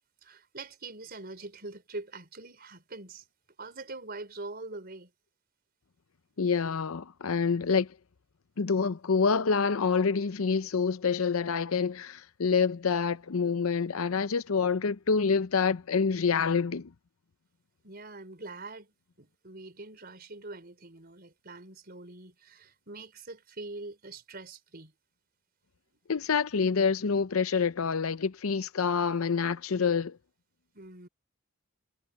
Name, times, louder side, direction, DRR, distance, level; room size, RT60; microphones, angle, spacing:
voice 1, 0.2-3.3 3.6-5.1 17.8-24.9 30.7-31.1, right 2 dB, 45° right, 4.9 m, -44 dB
voice 2, 6.4-7.9 8.6-16.9 26.1-30.2, left 5 dB, 85° left, 0.7 m, -27 dB
head